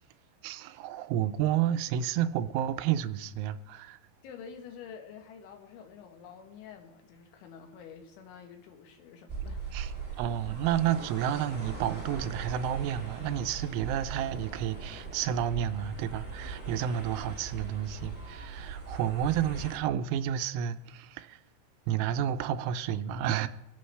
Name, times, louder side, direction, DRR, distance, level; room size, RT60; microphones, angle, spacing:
voice 1, 0.4-4.0 9.7-9.9 10.2-21.4 21.9-23.5, right 10 dB, 90° right, 3.0 m, -31 dB
voice 2, 4.2-9.7, left 7 dB, 85° left, 3.5 m, -48 dB
sound 1, 9.3-19.8, right 5 dB, 10° right, 0.4 m, -40 dB
23.0 x 8.5 x 3.2 m
omnidirectional pair, 5.4 m